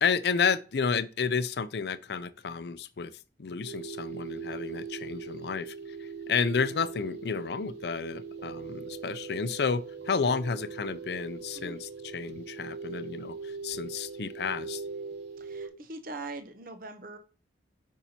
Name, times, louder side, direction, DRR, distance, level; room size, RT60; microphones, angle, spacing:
voice 1, 0.0-3.1 3.4-14.8, left 5 dB, 65° left, 0.5 m, -31 dB
sound 1, 3.6-15.7, right 5 dB, 65° right, 3.7 m, -41 dB
voice 2, 15.4-17.2, right 3 dB, 50° right, 0.8 m, -41 dB
9.0 x 5.6 x 2.8 m
head